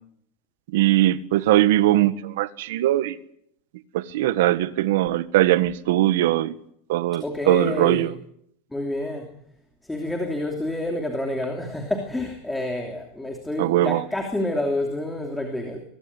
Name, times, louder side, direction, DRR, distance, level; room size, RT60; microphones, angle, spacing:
voice 1, 0.7-3.1 3.9-6.5 6.9-8.1 13.6-14.0, right 14 dB, 65° right, 1.6 m, -20 dB
voice 2, 7.2-8.1 8.7-9.3 9.8-15.8, left 1 dB, 5° left, 2.9 m, -28 dB
22.5 x 22.5 x 9.8 m
supercardioid pair, 170°, 0 cm